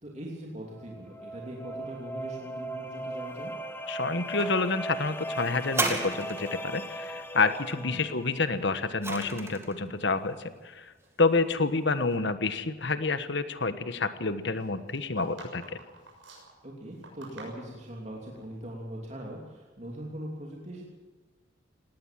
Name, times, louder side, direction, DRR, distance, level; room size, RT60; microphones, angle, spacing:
voice 1, 0.0-3.5 7.8-8.0 16.6-20.8, right 1 dB, 35° right, -2 dB, 3.0 m, -41 dB
sound 1, 0.7-8.5, right 1 dB, 10° left, 1.1 m, -38 dB
voice 2, 3.9-10.9 11.2-15.6, left 3 dB, 60° left, 12 dB, 1.3 m, -28 dB
sound 2, 4.2-6.2 6.4-7.2 7.9-8.4 8.7-9.0 9.6-9.7 10.3-11.8 12.1-12.3 14.5-18.0, right 2 dB, 85° right, 6.7 m, -50 dB
sound 3, 5.7-6.7 8.4-9.8 10.6-10.7, right 2 dB, 15° right, 2.2 m, -32 dB
19.0 x 18.0 x 7.6 m, 1.3 s
head